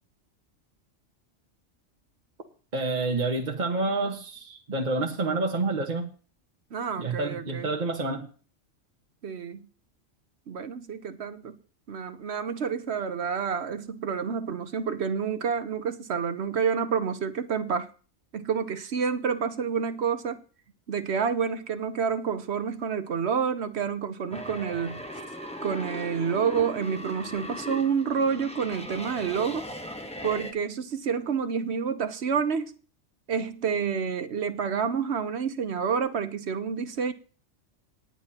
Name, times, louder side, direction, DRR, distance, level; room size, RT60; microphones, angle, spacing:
voice 1, 2.7-6.1 7.0-8.2, right 3 dB, 40° right, 1.4 m, -28 dB
voice 2, 6.7-7.7 9.2-9.6 10.5-11.6 11.9-17.9 18.3-20.4 20.9-25.0 25.6-29.7 30.2-32.7 33.3-37.1, right 6 dB, 60° right, 1.1 m, -28 dB
sound 1, 24.3-30.5, equal, 5° left, 1.1 m, -38 dB
18.5 x 9.8 x 2.9 m
omnidirectional pair, 1.3 m